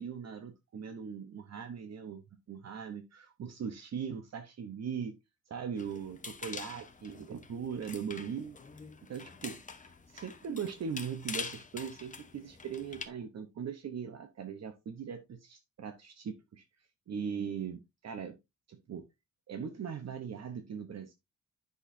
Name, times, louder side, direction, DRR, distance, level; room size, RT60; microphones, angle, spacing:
voice 1, 0.0-2.2 2.5-5.2 5.5-8.6 9.1-16.6 17.1-18.4 18.7-19.1 19.5-21.1, right 7 dB, 55° right, 0.9 m, -40 dB
sound 1, 5.8-13.1, left 4 dB, 25° left, 0.9 m, -45 dB
10.0 x 6.3 x 2.6 m
wide cardioid pair, 165°, 31 cm